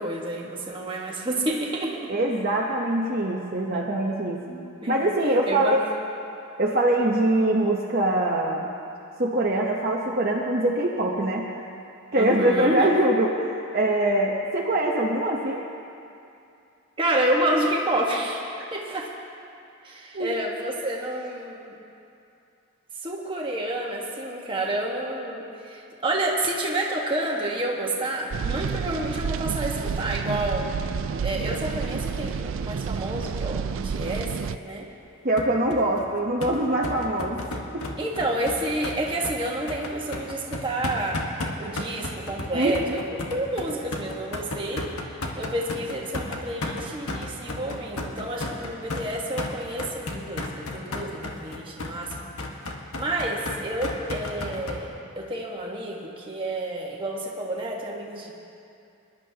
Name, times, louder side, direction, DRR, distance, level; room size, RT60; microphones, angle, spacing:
voice 1, 0.0-2.1 4.5-5.1 5.5-5.8 12.1-12.9 17.0-19.1 19.8-21.8 23.0-30.7 31.2-34.9 38.0-41.3 41.6-43.0 43.3-44.9 45.4-52.3 52.9-54.9 55.2-58.3, right 1 dB, 20° right, -2 dB, 1.4 m, -29 dB
voice 2, 2.1-4.4 4.9-5.8 6.6-8.6 9.2-11.5 12.1-15.6 20.1-20.3 35.2-37.4 42.5-43.0, right 1 dB, 40° right, -3 dB, 0.9 m, -23 dB
sound 1, 28.3-34.6, right 6 dB, 60° right, 0.3 m, -29 dB
sound 2, 35.4-54.8, left 2 dB, 75° left, 1.3 m, -34 dB
24.0 x 11.0 x 2.9 m, 2.6 s
head